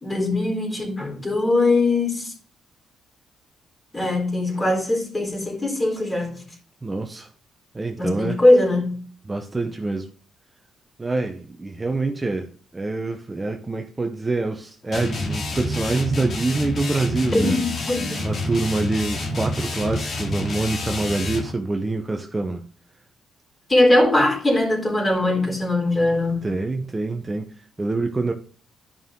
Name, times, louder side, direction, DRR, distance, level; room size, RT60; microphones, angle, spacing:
voice 1, 0.0-2.3 3.9-6.5 8.0-9.0 17.3-18.3 23.7-26.6, left 2 dB, 20° left, 3.8 m, -21 dB
voice 2, 6.8-7.3 7.7-8.4 9.3-10.1 11.0-17.6 18.2-22.6 26.4-28.3, right 3 dB, 20° right, 0.8 m, -26 dB
sound 1, 14.9-21.5, left 2 dB, 50° left, 2.3 m, -28 dB
12.0 x 5.6 x 3.7 m
cardioid pair, 90°, 0 cm